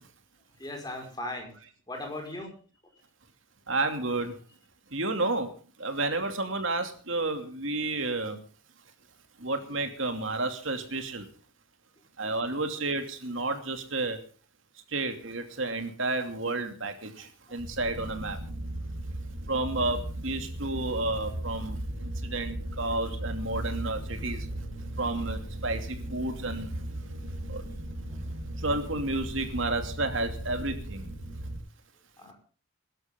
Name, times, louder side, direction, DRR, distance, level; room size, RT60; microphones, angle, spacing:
voice 1, 0.6-1.5 1.9-2.5 32.2-32.3, left 1 dB, 20° left, 1 dB, 5.3 m, -37 dB
voice 2, 3.7-4.3 4.9-5.5 5.8-8.3 9.4-11.2 12.2-14.2 14.9-16.9 17.5-18.4 19.5-20.0 20.2-21.7 22.3-24.4 25.0-25.8 26.1-26.7 28.6-30.7, right 2 dB, 70° right, 6 dB, 2.8 m, -30 dB
sound 1, 17.6-31.6, right 1 dB, 90° right, 5.9 m, -37 dB
22.0 x 12.0 x 3.8 m, 0.39 s
head